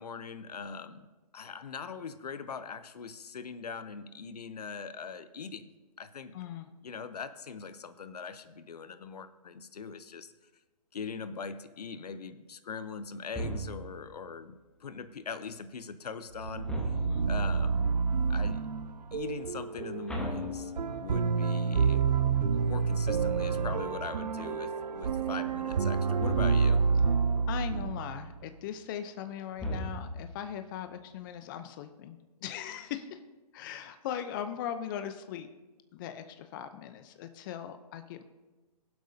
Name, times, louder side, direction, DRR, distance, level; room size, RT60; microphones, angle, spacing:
voice 1, 0.0-5.7 6.0-6.3 6.8-10.3 10.9-16.9 17.3-17.9 18.3-18.6 19.1-22.1 22.4-26.8, left 5 dB, 75° left, 12 dB, 0.8 m, -41 dB
voice 2, 6.3-6.7 16.9-17.3 27.5-33.2 33.5-35.5 35.9-38.2, left 9 dB, 30° left, 9 dB, 0.6 m, -39 dB
sound 1, 13.3-14.1 16.6-17.5 20.1-21.2 26.2-26.9 29.6-30.4, equal, 5° left, 1.2 m, -37 dB
sound 2, 16.4-28.4, right 5 dB, 90° right, 0.5 m, -28 dB
23.0 x 7.9 x 2.7 m, 1.2 s
hypercardioid pair, 140°, 20 cm